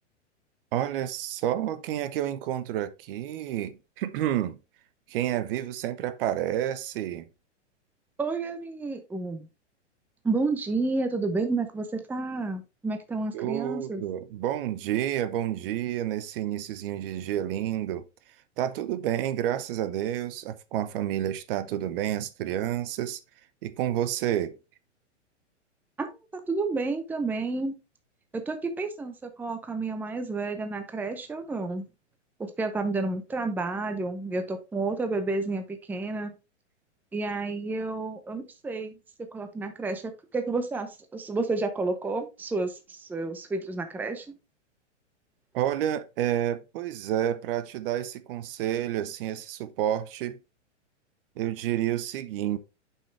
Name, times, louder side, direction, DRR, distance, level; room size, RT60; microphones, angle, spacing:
voice 1, 0.7-4.6 5.1-7.3 13.3-18.0 18.6-23.2 23.6-24.6 45.5-50.4 51.4-52.6, right 11 dB, 50° right, 0.8 m, -29 dB
voice 2, 8.2-9.5 10.2-14.0 26.0-27.8 28.3-31.9 32.4-36.3 37.1-39.0 39.3-44.3, right 3 dB, 5° right, 0.7 m, -30 dB
6.9 x 5.6 x 3.2 m
hypercardioid pair, 120°, 36 cm